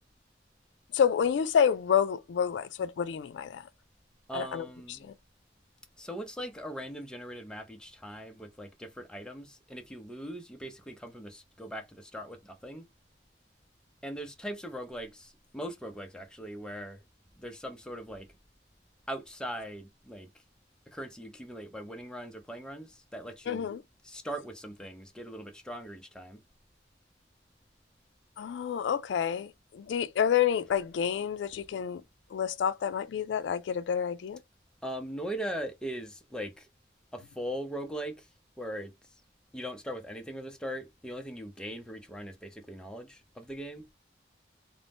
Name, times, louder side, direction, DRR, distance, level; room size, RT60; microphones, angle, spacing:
voice 1, 0.9-3.6 4.3-4.6 23.5-23.8 28.4-32.0 32.3-34.4, left 8 dB, 75° left, 0.3 m, -28 dB
voice 2, 4.3-5.1 6.0-12.8 14.0-17.0 17.4-18.3 19.1-20.3 20.9-23.7 24.0-26.4 34.8-36.7 37.1-38.3 38.6-38.9 39.5-43.9, equal, 5° left, 0.4 m, -40 dB
2.5 x 2.0 x 3.3 m
head